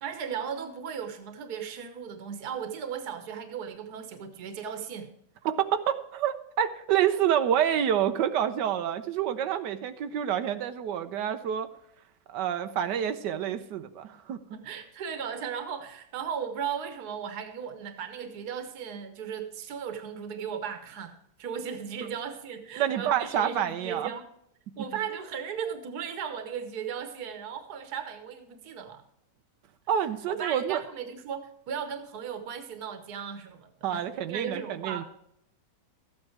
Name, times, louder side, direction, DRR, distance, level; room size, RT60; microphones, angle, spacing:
voice 1, 0.0-5.1 14.5-24.3 24.8-29.0 30.3-35.0, right 7 dB, 70° right, 7 dB, 1.6 m, -36 dB
voice 2, 5.4-11.7 12.3-14.4 22.8-24.1 29.9-30.8 33.8-35.0, right 9 dB, 90° right, 9 dB, 1.3 m, -28 dB
13.5 x 8.9 x 4.5 m, 0.77 s
omnidirectional pair, 1.8 m